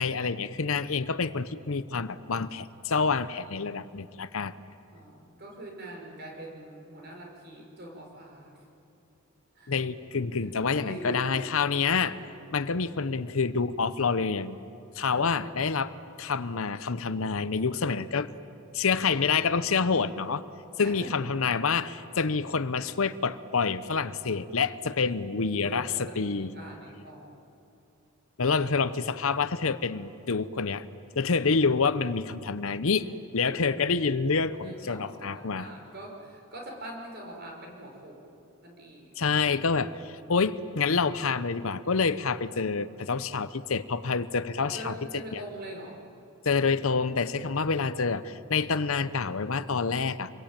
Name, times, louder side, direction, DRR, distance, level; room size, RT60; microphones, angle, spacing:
voice 1, 0.0-4.6 9.7-12.2 12.5-14.6 14.9-15.9 16.2-18.3 18.7-20.5 20.8-26.5 28.4-30.8 31.2-35.7 39.2-44.9 45.3-45.4 46.4-50.3, left 5 dB, 70° left, 14 dB, 0.8 m, -27 dB
voice 2, 4.9-8.6 9.6-9.7 10.4-11.4 12.0-12.1 13.2-13.3 15.1-15.7 20.8-21.1 25.5-27.4 34.6-38.3 38.6-39.2 44.6-46.0, right 1 dB, 45° right, 1 dB, 5.3 m, -43 dB
27.0 x 22.0 x 8.9 m, 2.7 s
head